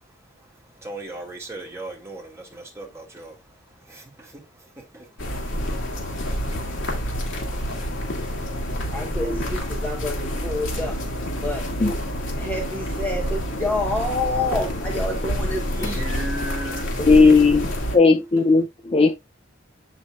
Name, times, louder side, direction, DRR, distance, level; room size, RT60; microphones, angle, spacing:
voice 1, 0.8-3.4 3.8-5.1 5.3-5.4 15.6-16.9, right 1 dB, 15° right, 2.2 m, -37 dB
sound 1, 5.2-18.0, equal, 75° left, 2.1 m, -28 dB
voice 2, 8.9-11.0 11.4-11.6 12.4-16.0, left 2 dB, 10° left, 0.8 m, -28 dB
voice 3, 17.0-17.7 17.9-19.1, left 4 dB, 30° left, 0.4 m, -16 dB
7.6 x 5.9 x 2.3 m
head